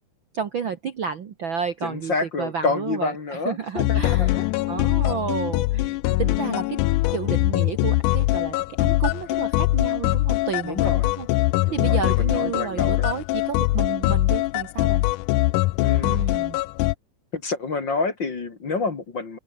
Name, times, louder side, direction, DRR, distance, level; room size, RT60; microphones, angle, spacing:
voice 1, 0.3-6.8 7.1-11.3 11.7-15.0 16.0-16.6, right 7 dB, 50° right, 1.5 m, -31 dB
voice 2, 1.8-4.5 10.6-11.1 11.6-13.1 15.8-16.2 17.3-19.4, left 4 dB, 35° left, 2.7 m, -28 dB
sound 1, 3.8-16.9, left 20 dB, 80° left, 1.9 m, -22 dB
omnidirectional pair, 3.9 m